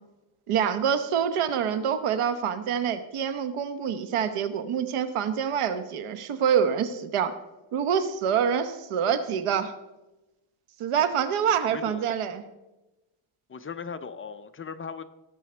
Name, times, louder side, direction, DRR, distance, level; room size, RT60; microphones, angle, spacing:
voice 1, 0.5-7.3 7.7-9.7 10.8-12.4, right 8 dB, 85° right, 11 dB, 1.0 m, -26 dB
voice 2, 11.6-12.1 13.5-15.0, left 6 dB, 25° left, 9 dB, 0.5 m, -38 dB
17.5 x 7.2 x 4.4 m, 1.0 s
cardioid pair, 150°, 49 cm